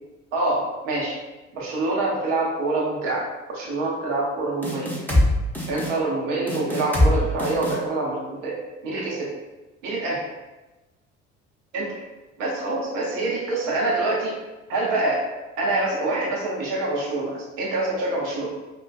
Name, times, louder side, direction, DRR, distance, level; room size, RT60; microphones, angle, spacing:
voice 1, 0.3-1.1 1.5-4.9 5.7-9.3 9.8-10.2 11.7-11.9 12.4-14.4 14.7-15.3 15.6-18.6, right 2 dB, 75° right, -4 dB, 1.0 m, -26 dB
sound 1, 4.6-5.3 5.5-5.9 6.5-7.1 7.4-7.8, left 1 dB, 5° left, 1.1 m, -21 dB
4.5 x 2.4 x 2.3 m, 1.1 s
figure-of-eight pair, 55°, 37 cm